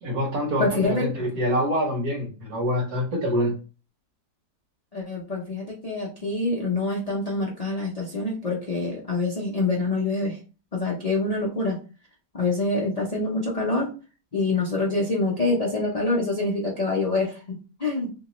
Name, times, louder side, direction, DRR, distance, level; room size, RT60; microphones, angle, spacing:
voice 1, 0.0-3.5, equal, 60° right, 1 dB, 1.4 m, -25 dB
voice 2, 0.6-1.3 4.9-10.4 10.7-11.8 12.3-13.9 14.3-18.1, left 2 dB, 75° left, -3 dB, 0.3 m, -26 dB
3.3 x 3.0 x 2.9 m, 0.35 s
omnidirectional pair, 1.9 m